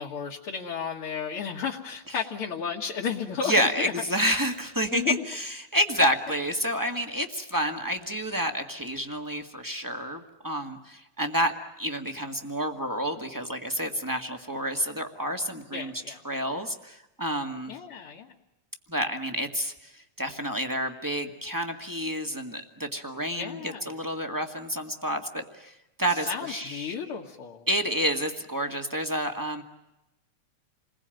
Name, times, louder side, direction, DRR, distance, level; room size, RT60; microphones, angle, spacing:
voice 1, 0.0-3.9 4.2-4.4 4.9-5.2 15.7-16.2 17.7-18.3 23.4-23.9 26.2-27.7, left 6 dB, 50° left, -1 dB, 2.3 m, -33 dB
voice 2, 3.4-15.9 16.2-17.7 18.9-26.9 27.7-29.6, equal, 10° right, 4 dB, 1.2 m, -29 dB
29.0 x 21.0 x 9.1 m, 0.94 s
omnidirectional pair, 3.4 m